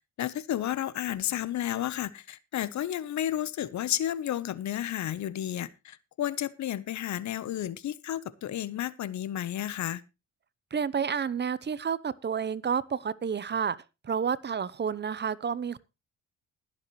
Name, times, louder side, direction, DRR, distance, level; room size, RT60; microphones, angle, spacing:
voice 1, 0.2-10.0, left 12 dB, 65° left, 1.0 m, -32 dB
voice 2, 10.7-13.8 14.0-15.8, right 7 dB, 35° right, 0.8 m, -30 dB
20.5 x 7.5 x 3.1 m
cardioid pair, 90°, 30 cm